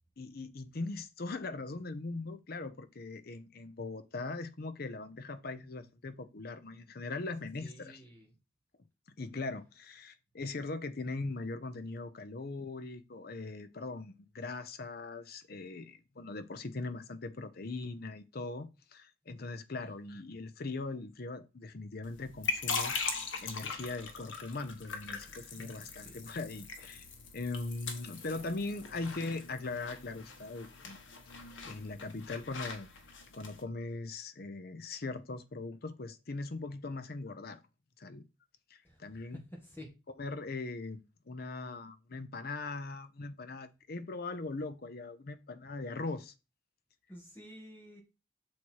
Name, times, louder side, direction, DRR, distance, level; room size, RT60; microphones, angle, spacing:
voice 1, 0.2-8.0 9.2-22.9 23.4-27.0 27.3-31.0 31.6-32.9 33.3-37.6 38.0-38.2 38.7-39.4 40.2-46.3, left 3 dB, 50° left, 0.7 m, -40 dB
voice 2, 7.6-8.3 19.8-20.2 25.2-25.3 25.8-26.2 38.8-39.9 47.1-48.0, equal, 10° left, 2.0 m, -51 dB
sound 1, 22.0-33.6, left 4 dB, 75° left, 1.2 m, -41 dB
6.3 x 4.2 x 4.6 m
head